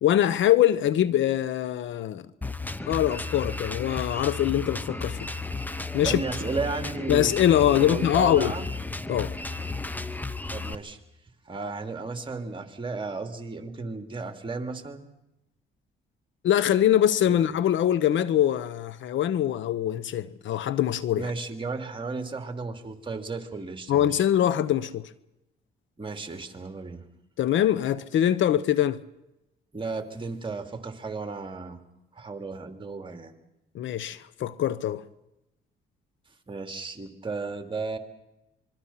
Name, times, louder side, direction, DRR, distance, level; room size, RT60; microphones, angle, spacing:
voice 1, 0.0-2.2 2.9-5.3 5.9-6.2 7.1-8.5 9.1-9.3 16.4-21.3 23.9-25.1 27.4-29.0 33.7-35.0, left 11 dB, 75° left, 1.0 m, -23 dB
Drum kit, 2.4-10.7, left 3 dB, 10° left, 1.0 m, -33 dB
voice 2, 6.0-7.3 7.7-8.7 10.5-11.0 11.5-15.1 17.3-17.4 21.2-24.3 26.0-27.0 29.7-31.8 32.1-33.3 36.5-38.0, right 3 dB, 25° right, 2.8 m, -34 dB
26.0 x 23.0 x 5.8 m
cardioid pair, 90°, 20 cm